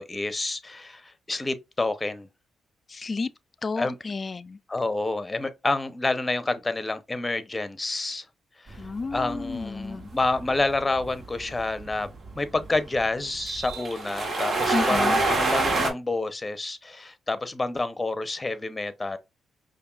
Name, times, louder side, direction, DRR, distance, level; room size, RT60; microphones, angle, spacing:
voice 1, 0.0-2.3 3.8-4.0 4.7-8.2 8.6-8.8 9.1-12.1 12.4-19.2, left 2 dB, 25° left, 0.7 m, -28 dB
voice 2, 2.9-3.3 3.6-4.6 8.8-10.1 14.7-15.2, left 4 dB, 40° left, 0.3 m, -31 dB
sound 1, 8.7-15.9, right 3 dB, 50° right, 1.3 m, -27 dB
5.1 x 2.6 x 2.4 m
supercardioid pair, 60°, 0 cm